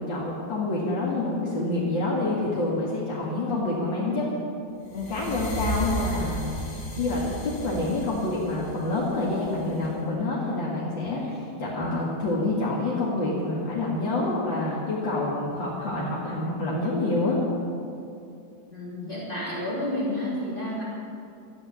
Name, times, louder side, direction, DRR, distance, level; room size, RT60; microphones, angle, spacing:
voice 1, 0.0-4.3 4.9-6.6 7.0-17.4, left 2 dB, 75° left, -6 dB, 2.8 m, -27 dB
sound 1, 4.9-9.9, equal, 50° left, 2.5 m, -34 dB
voice 2, 18.7-20.8, left 1 dB, 25° left, -7 dB, 3.0 m, -30 dB
13.0 x 8.4 x 9.9 m, 2.6 s
omnidirectional pair, 2.1 m